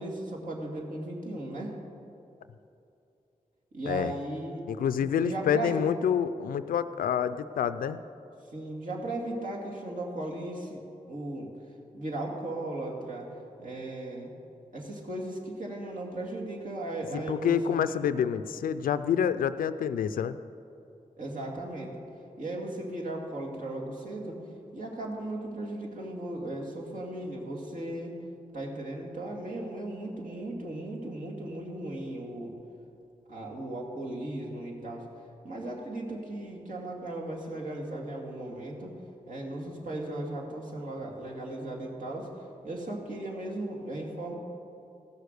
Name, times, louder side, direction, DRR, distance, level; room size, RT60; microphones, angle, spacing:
voice 1, 0.0-1.8 3.7-4.6 5.0-5.8 8.5-10.8 11.1-11.5 11.9-14.3 14.7-18.2 21.2-22.0 22.4-24.4 24.7-28.1 28.5-32.5 33.3-35.1 35.4-38.9 39.3-42.3 42.6-44.3, right 1 dB, 65° right, -2 dB, 2.3 m, -36 dB
voice 2, 4.7-8.0 17.3-20.4, left 8 dB, 90° left, 12 dB, 0.4 m, -27 dB
14.5 x 6.6 x 6.7 m, 2.7 s
cardioid pair, 45°, 14 cm